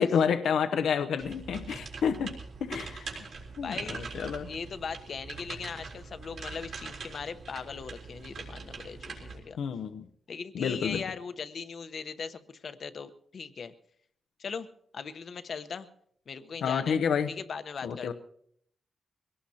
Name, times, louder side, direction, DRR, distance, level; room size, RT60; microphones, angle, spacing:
voice 1, 0.0-2.4 2.6-3.2 3.6-4.5 9.6-10.1 10.5-11.0 16.6-17.3 17.8-18.1, left 7 dB, 85° left, 8 dB, 0.8 m, -29 dB
sound 1, 1.2-9.4, right 4 dB, 60° right, 3.8 m, -42 dB
voice 2, 3.6-4.0 4.4-9.6 10.3-13.7 14.4-14.7 14.9-15.9 16.3-17.0 17.3-18.1, left 5 dB, 50° left, 11 dB, 0.9 m, -39 dB
23.0 x 18.0 x 2.9 m, 0.67 s
wide cardioid pair, 140°, 0 cm